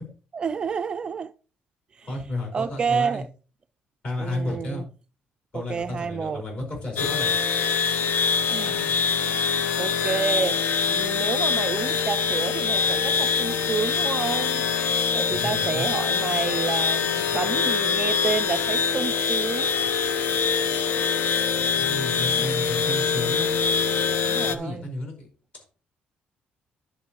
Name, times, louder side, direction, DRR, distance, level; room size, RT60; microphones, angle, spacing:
voice 1, 0.3-1.3 2.0-2.1 2.5-3.3 4.2-4.9 5.5-6.4 8.5-9.0 9.8-14.6 14.9-19.8 24.2-24.9, right 6 dB, 25° right, 0.3 m, -29 dB
voice 2, 2.0-3.2 4.0-4.8 5.5-7.3 15.3-15.9 21.6-23.5 24.4-25.3, left 2 dB, 40° left, 4.7 m, -32 dB
sound 1, 7.0-24.5, left 6 dB, 75° left, 0.9 m, -24 dB
10.5 x 8.1 x 3.0 m
cardioid pair, 170°, 3 cm